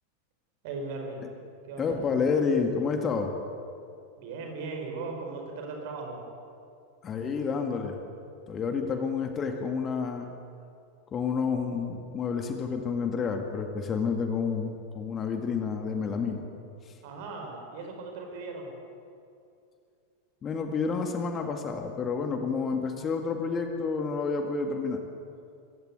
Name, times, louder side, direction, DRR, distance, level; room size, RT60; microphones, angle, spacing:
voice 1, 0.6-1.3 1.6-2.0 4.2-6.2 17.0-18.7, right 3 dB, 50° right, 2 dB, 5.0 m, -38 dB
voice 2, 1.8-3.3 7.0-8.0 8.5-10.3 11.1-16.4 16.9-17.0 20.4-25.0, left 5 dB, 25° left, 5 dB, 2.1 m, -29 dB
23.5 x 16.0 x 8.2 m, 2.5 s
figure-of-eight pair, 90°, 0 cm